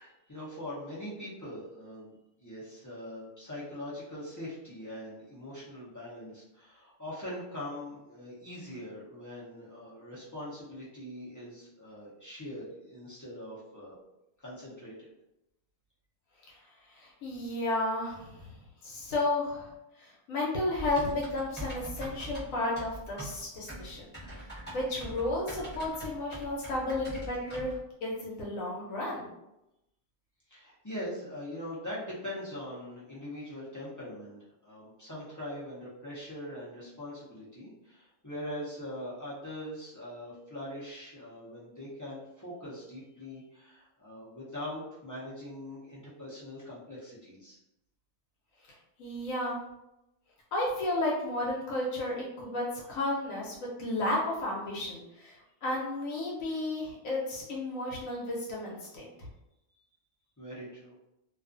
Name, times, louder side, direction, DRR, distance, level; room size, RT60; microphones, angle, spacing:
voice 1, 0.0-14.0 14.4-15.1 30.5-47.6 60.4-60.9, left 1 dB, 30° left, -8 dB, 0.3 m, -42 dB
voice 2, 16.9-18.5 18.8-19.7 20.0-24.1 24.4-24.5 24.7-27.7 28.0-29.3 49.0-49.6 50.5-59.1, left 2 dB, 90° left, -3 dB, 1.0 m, -33 dB
Typing, 20.8-27.8, right 1 dB, 10° left, 0.9 m, -42 dB
2.4 x 2.3 x 2.4 m, 0.90 s
omnidirectional pair, 1.3 m